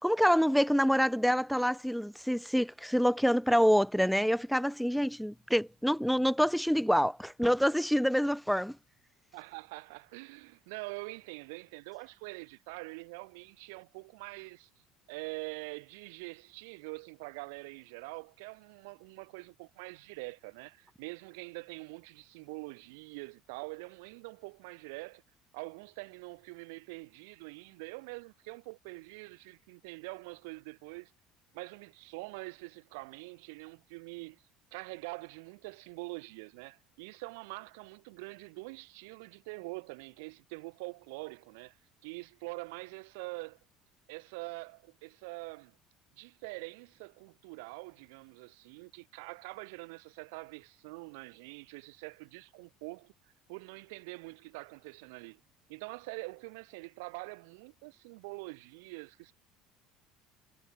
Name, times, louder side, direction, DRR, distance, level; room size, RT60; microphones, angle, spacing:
voice 1, 0.0-8.8, equal, ahead, 0.4 m, -26 dB
voice 2, 9.3-14.7 15.1-25.2 25.5-31.1 31.5-34.4 34.7-41.8 42.0-43.6 44.1-45.8 46.2-53.1 53.5-55.4 55.7-59.3, right 28 dB, 85° right, 1.0 m, -45 dB
supercardioid pair, 100°, 0 cm